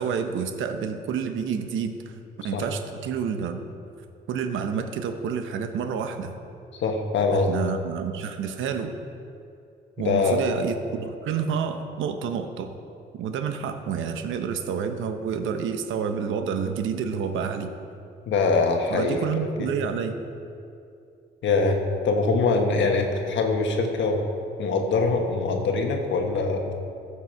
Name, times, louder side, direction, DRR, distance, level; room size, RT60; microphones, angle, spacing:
voice 1, 0.0-2.1 2.4-3.6 4.3-6.4 7.5-8.9 10.0-12.7 13.1-17.7 18.9-20.2, right 6 dB, 80° right, 7 dB, 0.9 m, -29 dB
voice 2, 6.8-7.5 10.0-10.4 18.3-19.3 19.6-19.7 21.4-21.8 22.0-24.2 24.6-26.7, left 3 dB, 70° left, 3 dB, 1.4 m, -23 dB
14.5 x 6.7 x 4.6 m, 2.6 s
cardioid pair, 90°, 20 cm